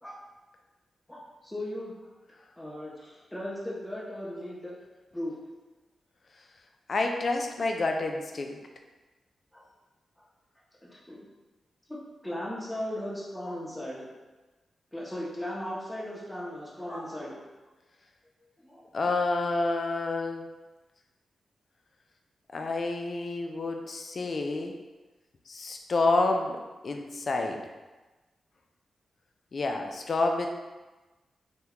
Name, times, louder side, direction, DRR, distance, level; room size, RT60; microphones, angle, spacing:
voice 1, 1.1-1.9 2.6-4.7 5.1-5.3 9.5-9.6 10.8-11.2 11.9-14.1 14.9-17.4 18.6-18.8, left 1 dB, 5° left, -5 dB, 0.8 m, -37 dB
voice 2, 6.9-8.6 18.9-20.5 22.5-24.7 25.5-27.6 29.5-30.5, left 3 dB, 50° left, 3 dB, 0.4 m, -29 dB
2.9 x 2.2 x 3.5 m, 1.2 s
cardioid pair, 80°, 0 cm